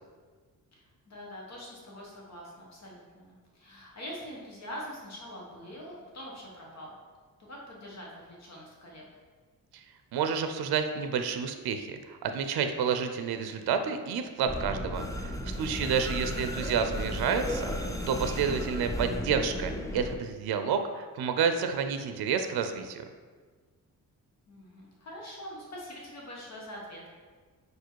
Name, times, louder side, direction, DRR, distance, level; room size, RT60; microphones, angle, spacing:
voice 1, 0.7-6.9 7.4-9.1 15.5-15.9 16.3-16.5 24.5-27.1, equal, 45° left, -3 dB, 1.3 m, -44 dB
voice 2, 10.1-23.0, right 6 dB, 85° right, 7 dB, 0.5 m, -30 dB
sound 1, 14.5-20.2, equal, 10° left, 0.4 m, -34 dB
4.8 x 4.7 x 4.5 m, 1.5 s
wide cardioid pair, 170°, 37 cm